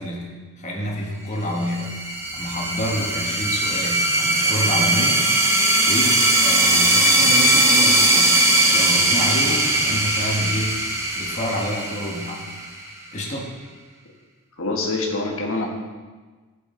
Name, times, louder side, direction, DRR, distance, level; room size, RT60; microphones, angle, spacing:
voice 1, 0.0-5.3 5.9-8.4 8.7-12.7 13.1-13.6, equal, 30° left, -1 dB, 1.4 m, -28 dB
sound 1, 1.6-12.9, right 1 dB, 10° right, 0.8 m, -19 dB
voice 2, 14.6-15.7, left 2 dB, 65° left, 0 dB, 1.4 m, -25 dB
12.5 x 6.2 x 3.8 m, 1.3 s
head